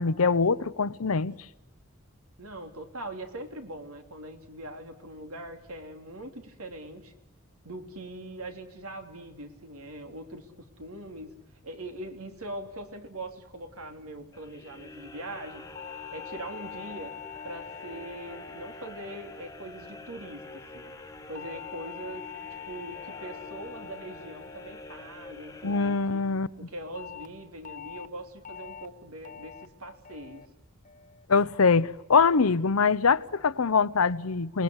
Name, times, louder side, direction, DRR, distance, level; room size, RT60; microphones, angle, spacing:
voice 1, 0.0-1.4 25.6-26.5 31.3-34.6, left 5 dB, 80° left, 0.8 m, -23 dB
voice 2, 2.4-7.1 7.6-11.3 11.6-15.7 16.1-17.1 17.4-20.9 21.3-22.2 22.5-26.2 26.6-30.4, right 1 dB, 85° right, 3.2 m, -42 dB
sound 1, 14.3-26.6, left 2 dB, 15° left, 1.3 m, -47 dB
sound 2, 15.8-20.2 21.4-25.8 27.0-27.3 27.7-28.1 28.5-28.9 29.3-29.7 30.1-30.5 30.9-31.3, left 8 dB, 35° left, 1.0 m, -44 dB
29.5 x 19.5 x 8.0 m
head